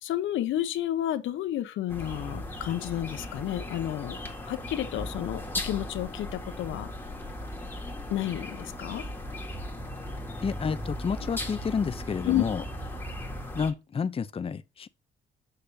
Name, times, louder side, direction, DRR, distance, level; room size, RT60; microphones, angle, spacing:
voice 1, 0.0-6.9 8.1-9.0 12.2-12.4, left 13 dB, 80° left, 0.9 m, -31 dB
sound 1, 1.9-13.7, left 1 dB, 10° left, 2.1 m, -37 dB
voice 2, 10.4-12.6 13.5-14.9, left 6 dB, 30° left, 0.6 m, -30 dB
6.7 x 6.6 x 2.7 m
cardioid pair, 90°, 20 cm